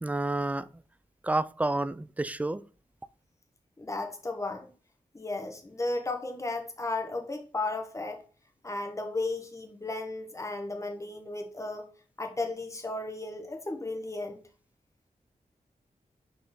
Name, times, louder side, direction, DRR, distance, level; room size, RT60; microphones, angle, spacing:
voice 1, 0.0-0.7 1.2-2.6, right 2 dB, 10° right, 0.3 m, -29 dB
voice 2, 3.8-4.7 5.1-8.2 8.6-11.8 12.2-14.4, left 2 dB, 20° left, 1.1 m, -34 dB
5.2 x 4.5 x 4.2 m
wide cardioid pair, 115°, 14 cm